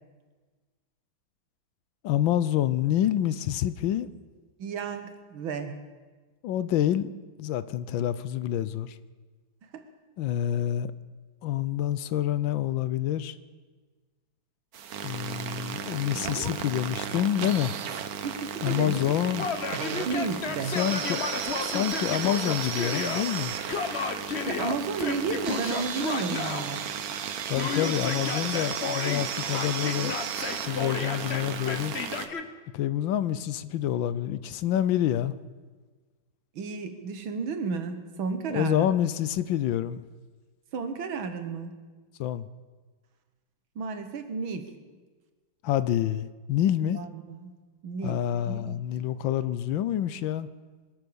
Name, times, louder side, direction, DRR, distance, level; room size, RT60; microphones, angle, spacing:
voice 1, 2.0-4.1 6.4-7.1 7.4-9.0 10.2-10.9 11.4-13.3 15.0-17.7 18.6-19.5 20.7-21.3 21.6-23.5 27.5-30.2 30.7-31.9 32.7-35.3 38.5-40.0 42.2-42.5 45.6-47.0 48.0-50.5, left 11 dB, 75° left, 1.4 m, -27 dB
voice 2, 4.6-5.8 9.7-9.8 16.1-16.6 18.2-19.1 20.1-20.8 24.5-26.9 36.5-38.9 40.7-41.7 43.8-44.7 47.0-47.5 47.8-48.8, right 5 dB, 80° right, 2.1 m, -33 dB
sound 1, 14.7-32.3, right 7 dB, 55° right, 1.2 m, -34 dB
Yell, 19.4-23.2 23.7-26.7 27.6-29.2 29.5-32.4, left 5 dB, 45° left, 0.9 m, -33 dB
24.5 x 8.4 x 6.9 m
omnidirectional pair, 2.2 m